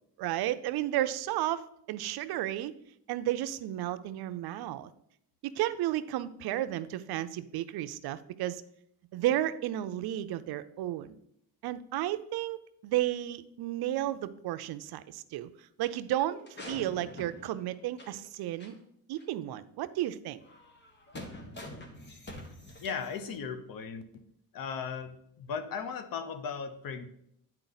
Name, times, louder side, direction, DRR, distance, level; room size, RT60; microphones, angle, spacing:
voice 1, 0.2-2.7 3.1-4.9 5.4-8.6 9.1-11.2 11.6-15.5 15.8-16.4 16.7-18.8 19.1-20.4, right 13 dB, 75° right, 13 dB, 0.6 m, -33 dB
sound 1, 16.3-18.3 18.6-18.7 19.2-19.3 20.4-23.4, left 1 dB, 30° left, 1.4 m, -46 dB
voice 2, 22.8-24.0 24.5-27.1, left 6 dB, 60° left, 9 dB, 0.9 m, -37 dB
9.8 x 4.5 x 4.0 m, 0.73 s
cardioid pair, 120°, 38 cm